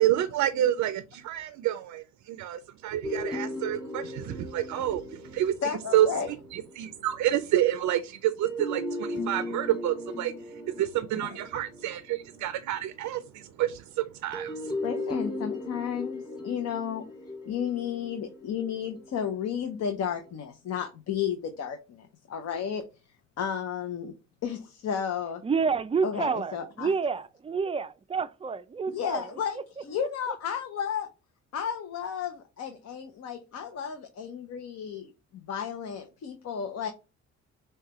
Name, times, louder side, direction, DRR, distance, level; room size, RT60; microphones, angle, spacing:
voice 1, 0.0-5.5 5.9-6.1 6.5-14.8, right 12 dB, 75° right, 0.5 m, -28 dB
sound 1, 3.0-6.9 8.4-12.9 14.3-19.5, left 1 dB, 15° left, 1.8 m, -37 dB
voice 2, 5.6-6.3 14.8-17.0 17.4-22.8 23.4-24.1 24.4-25.4 26.0-26.9 28.9-31.1 31.5-36.9, left 8 dB, 60° left, 0.7 m, -33 dB
voice 3, 25.4-29.2 30.0-30.1, right 5 dB, 20° right, 0.3 m, -29 dB
6.4 x 2.3 x 2.9 m
cardioid pair, 90°, 30 cm